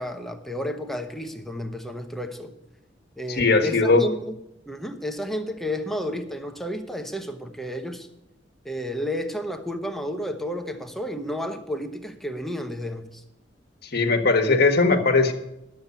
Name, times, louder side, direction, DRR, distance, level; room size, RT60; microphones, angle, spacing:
voice 1, 0.0-2.5 3.2-4.3 4.7-8.1 8.6-13.2, equal, ahead, 1.0 m, -31 dB
voice 2, 3.4-4.0 13.9-15.3, left 3 dB, 60° left, 1.5 m, -19 dB
11.0 x 7.4 x 8.2 m
head